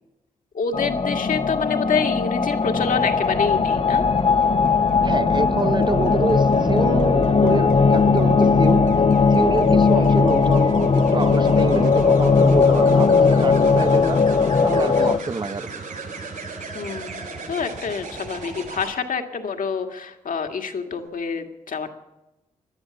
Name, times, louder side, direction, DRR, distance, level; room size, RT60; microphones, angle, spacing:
voice 1, 0.5-4.0 9.9-10.2 16.7-21.9, left 5 dB, 65° left, 1.9 m, -27 dB
sound 1, 0.7-15.2, left 5 dB, 40° left, 0.9 m, -18 dB
sound 2, 2.8-18.9 20.8-21.1, right 4 dB, 70° right, 6.0 m, -34 dB
voice 2, 5.0-8.9 9.3-14.2 14.6-15.7, right 3 dB, 30° right, 0.8 m, -26 dB
17.5 x 11.5 x 7.0 m
supercardioid pair, 40°, 15 cm